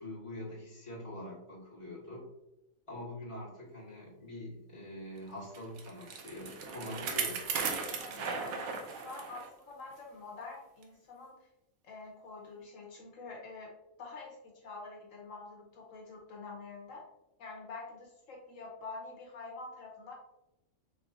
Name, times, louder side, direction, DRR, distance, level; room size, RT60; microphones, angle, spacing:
voice 1, 0.0-2.3 2.9-7.4 8.2-8.4, left 1 dB, 25° left, -7 dB, 1.6 m, -44 dB
Bicycle, 5.5-9.5 9.9-10.0 10.8-10.9, right 5 dB, 90° right, 1.1 m, -37 dB
voice 2, 8.0-11.5 11.8-17.1 17.4-20.1, left 3 dB, 75° left, -1 dB, 1.1 m, -47 dB
4.7 x 3.4 x 2.6 m, 0.91 s
omnidirectional pair, 1.4 m